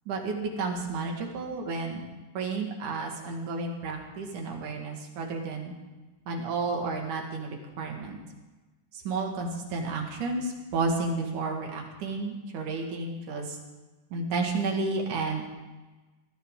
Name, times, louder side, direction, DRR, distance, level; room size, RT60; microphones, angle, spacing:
voice 1, 0.1-2.0 2.4-5.7 6.3-8.2 8.9-13.6 14.1-15.5, right 3 dB, 65° right, 1 dB, 3.4 m, -31 dB
20.5 x 15.5 x 3.8 m, 1.2 s
omnidirectional pair, 3.9 m